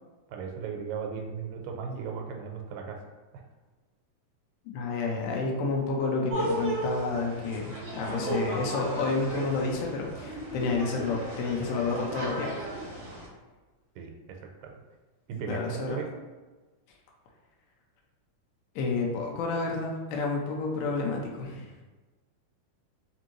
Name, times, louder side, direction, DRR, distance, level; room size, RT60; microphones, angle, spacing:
voice 1, 0.3-3.1 3.3-3.4 7.7-7.9 14.0-14.7 15.3-16.2, right 6 dB, 85° right, 2 dB, 2.2 m, -37 dB
voice 2, 4.7-12.5 15.5-16.0 18.8-21.7, left 3 dB, 85° left, -1 dB, 2.3 m, -30 dB
sound 1, 6.3-13.3, right 1 dB, 65° right, 1.0 m, -35 dB
5.4 x 2.6 x 3.0 m, 1.3 s
omnidirectional pair, 3.8 m